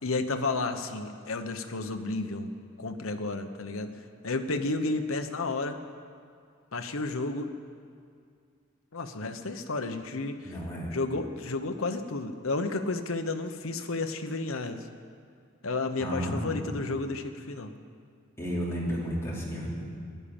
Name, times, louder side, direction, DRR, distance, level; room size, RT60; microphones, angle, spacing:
voice 1, 0.0-2.5 2.8-5.8 6.7-7.5 8.9-10.5 10.9-14.9 15.6-17.7, left 3 dB, 75° left, 7 dB, 1.0 m, -32 dB
voice 2, 10.4-10.9 16.0-16.5 18.4-19.9, equal, 15° left, -6 dB, 3.1 m, -32 dB
14.0 x 11.5 x 8.9 m, 2.2 s
head